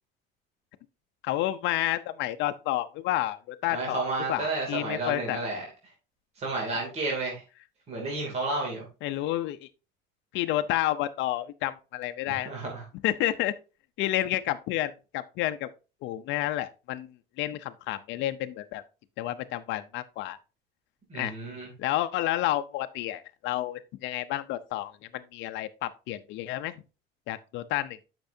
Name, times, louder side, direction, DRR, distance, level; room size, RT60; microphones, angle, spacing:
voice 1, 1.2-4.0 4.3-5.4 9.0-9.6 10.3-12.5 13.0-13.5 14.0-15.7 16.0-17.1 17.4-18.8 19.2-20.4 21.1-21.3 21.8-26.7 27.3-28.0, left 14 dB, 70° left, 0.6 m, -30 dB
voice 2, 3.7-5.7 6.4-7.4 7.9-8.9 12.3-12.8 21.1-21.7, right 2 dB, 35° right, 2.7 m, -31 dB
10.5 x 6.1 x 2.7 m
cardioid pair, 165°, 20 cm